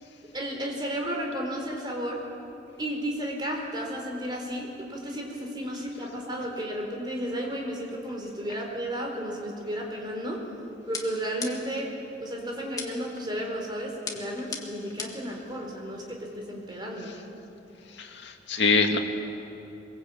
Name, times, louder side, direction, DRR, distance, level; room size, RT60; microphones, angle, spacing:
voice 1, 0.3-2.2 2.8-10.4 10.9-11.9 12.2-17.1, equal, 25° right, 0 dB, 4.3 m, -33 dB
sound 1, 10.9-11.9 12.8-13.2 14.1-15.3, left 4 dB, 20° left, 1.9 m, -37 dB
voice 2, 18.0-19.0, left 4 dB, 70° left, 3 dB, 2.2 m, -24 dB
23.0 x 22.5 x 8.6 m, 2.9 s
head